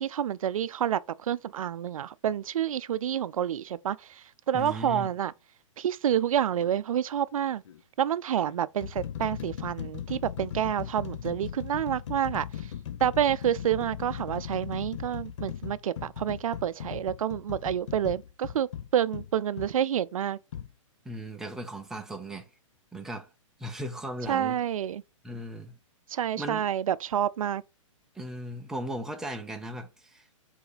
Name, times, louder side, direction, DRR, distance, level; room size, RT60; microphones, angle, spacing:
voice 1, 0.0-5.3 5.8-7.6 8.0-12.5 13.0-20.4 24.3-25.0 26.1-27.6, right 10 dB, 85° right, 0.4 m, -28 dB
voice 2, 4.5-5.1 21.0-22.5 22.9-23.3 23.6-24.6 25.2-25.7 26.4-26.6 28.1-30.4, equal, 5° right, 0.6 m, -37 dB
sound 1, 6.5-6.8 7.6-7.8 8.4-19.7 20.5-20.7, left 9 dB, 65° left, 0.8 m, -38 dB
4.7 x 4.2 x 5.0 m
hypercardioid pair, 150°, 17 cm